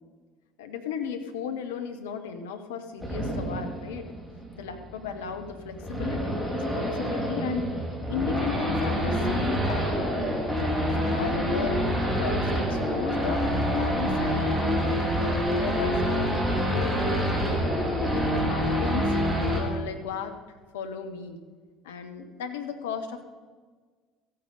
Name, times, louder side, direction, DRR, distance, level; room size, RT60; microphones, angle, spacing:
voice 1, 0.6-4.1 4.6-7.7 8.1-10.1 10.9-16.2 16.6-17.6 18.0-20.4 20.7-21.4 21.8-23.3, left 7 dB, 75° left, 7 dB, 1.0 m, -35 dB
Race car auto racing / Idling / Accelerating revving vroom, 3.0-19.6, equal, ahead, 3.4 m, -27 dB
15.0 x 8.8 x 5.3 m, 1.5 s
figure-of-eight pair, 60°, 0 cm